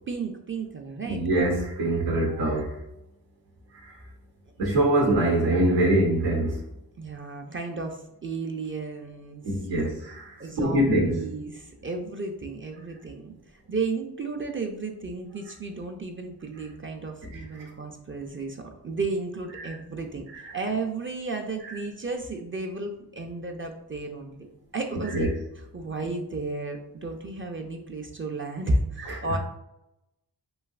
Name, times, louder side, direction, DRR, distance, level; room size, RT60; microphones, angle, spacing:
voice 1, 0.1-1.2 2.3-2.6 7.0-9.6 10.4-20.3 20.5-25.3 25.7-29.4, right 3 dB, 30° right, 3 dB, 0.4 m, -33 dB
voice 2, 1.1-2.8 3.8-4.0 4.6-6.6 9.4-11.2 17.3-17.4 19.6-19.7 20.3-20.4 21.7-21.8 25.1-25.3 29.1-29.2, right 1 dB, 90° right, -4 dB, 0.7 m, -24 dB
3.1 x 2.6 x 2.4 m, 0.86 s
cardioid pair, 50°, 43 cm